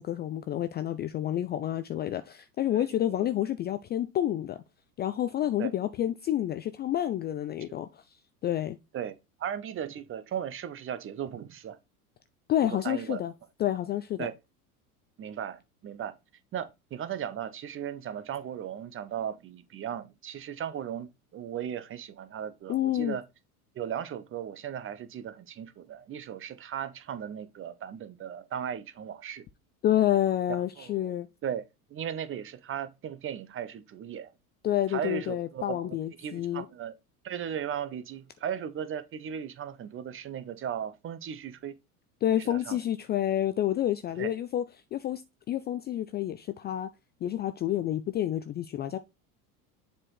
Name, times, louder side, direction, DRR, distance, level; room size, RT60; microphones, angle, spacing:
voice 1, 0.0-4.6 5.0-8.0 8.4-8.8 12.5-13.3 13.6-14.3 22.7-23.2 29.8-31.3 34.6-36.6 42.2-44.6 44.9-45.2 45.5-46.9 47.2-49.0, left 12 dB, 25° left, 0.4 m, -29 dB
voice 2, 2.7-3.3 5.6-5.7 7.7-7.8 8.9-11.8 12.6-13.2 14.2-14.3 15.2-16.2 16.5-23.2 23.8-29.4 30.5-31.1 31.4-31.6 31.9-34.3 34.9-36.9 37.2-41.8 42.3-42.8 44.2-44.3, right 9 dB, 30° right, 0.7 m, -37 dB
7.3 x 4.4 x 3.2 m
hypercardioid pair, 80°, 45 cm